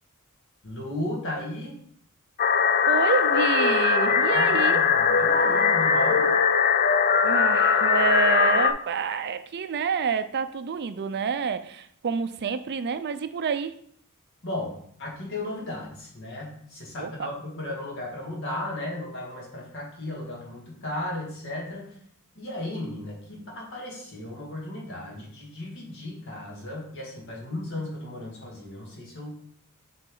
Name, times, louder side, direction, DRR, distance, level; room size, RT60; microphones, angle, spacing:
voice 1, 0.6-1.8 4.3-6.3 14.4-21.9 22.4-29.5, left 1 dB, 60° left, -3 dB, 2.2 m, -35 dB
sound 1, 2.4-8.7, left 6 dB, 45° left, 0.5 m, -21 dB
voice 2, 2.9-4.8 7.2-13.8 17.0-17.3, right 6 dB, 50° right, 11 dB, 0.4 m, -28 dB
7.9 x 4.2 x 3.8 m, 0.64 s
head